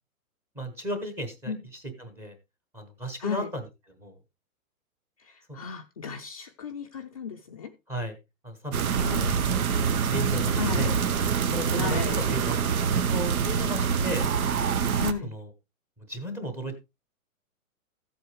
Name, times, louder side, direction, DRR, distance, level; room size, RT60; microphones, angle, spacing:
voice 1, 0.5-2.4 2.7-3.7 4.0-4.2 5.5-5.6 7.9-8.2 8.4-10.9 11.5-14.3 15.2-15.5 16.0-16.8, right 1 dB, 5° right, 0.8 m, -35 dB
voice 2, 3.2-3.5 5.2-7.7 9.0-9.3 10.6-11.0 11.8-12.3 15.0-15.3, left 5 dB, 25° left, 0.5 m, -34 dB
sound 1, 8.7-15.1, right 6 dB, 80° right, 1.3 m, -25 dB
14.5 x 7.9 x 3.2 m
hypercardioid pair, 160°, 42 cm